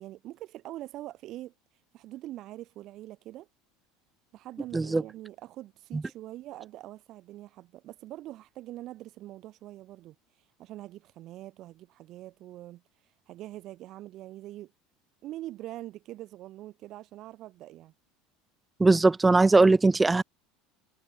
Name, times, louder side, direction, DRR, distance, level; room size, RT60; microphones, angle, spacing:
voice 1, 0.0-1.5 1.9-3.5 4.3-14.7 15.2-17.9, right 15 dB, 50° right, 3.5 m, -44 dB
voice 2, 18.8-20.2, right 3 dB, 15° right, 0.9 m, -20 dB
figure-of-eight pair, 75°, 0 cm